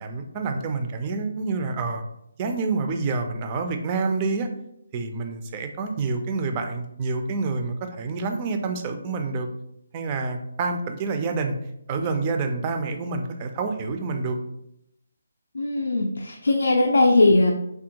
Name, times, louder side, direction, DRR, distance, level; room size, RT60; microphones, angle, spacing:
voice 1, 0.0-2.0 2.4-4.5 4.9-9.5 9.9-11.6 11.9-14.4, right 4 dB, 25° right, 5 dB, 0.3 m, -27 dB
voice 2, 15.5-17.5, left 2 dB, 85° left, 1 dB, 0.4 m, -19 dB
3.4 x 2.2 x 2.8 m, 0.79 s
figure-of-eight pair, 160°, 0 cm